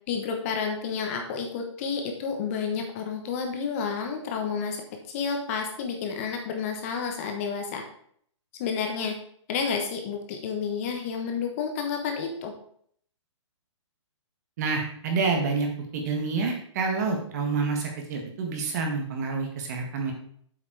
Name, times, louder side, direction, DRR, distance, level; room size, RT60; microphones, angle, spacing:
voice 1, 0.1-4.8 5.1-7.8 8.6-9.2 9.5-12.5, left 6 dB, 30° left, 3 dB, 1.1 m, -30 dB
voice 2, 14.6-15.7 15.9-20.1, right 4 dB, 35° right, 2 dB, 1.8 m, -28 dB
7.8 x 5.7 x 4.7 m, 0.63 s
hypercardioid pair, 165°, 16 cm